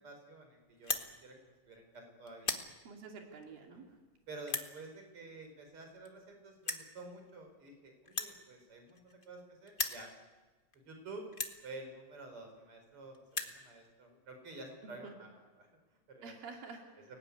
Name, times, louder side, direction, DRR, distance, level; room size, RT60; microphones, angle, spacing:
voice 1, 0.0-2.6 3.9-4.0 4.3-10.1 10.9-11.2 11.6-15.7 16.1-16.4, right 2 dB, 40° right, 4 dB, 5.7 m, -50 dB
sound 1, 0.7-1.1 1.7-2.0 2.3-2.7 3.4-3.5 4.4-4.7 5.8-5.9 6.0-6.1 6.6-6.9 8.1-9.4 9.7-10.0 10.7-10.8 11.3-11.6 12.5-12.6 12.8-12.9 13.1-13.6, left 3 dB, 65° left, 0.5 m, -37 dB
voice 2, 2.8-3.9 14.8-15.1 16.2-16.9, right 4 dB, 85° right, 2 dB, 4.5 m, -49 dB
30.0 x 19.5 x 9.7 m, 1.3 s
omnidirectional pair, 4.0 m